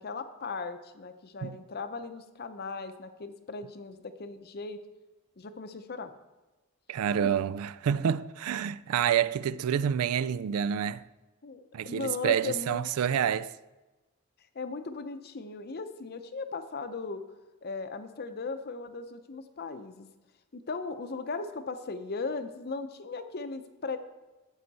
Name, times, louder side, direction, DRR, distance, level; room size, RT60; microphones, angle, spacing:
voice 1, 0.0-4.8 5.4-6.1 11.4-12.9 14.5-17.2 17.6-20.1 20.5-24.0, left 4 dB, 45° left, 0.6 m, -37 dB
voice 2, 6.9-11.1 11.7-13.5, right 8 dB, 80° right, 0.4 m, -28 dB
12.0 x 7.7 x 4.1 m
head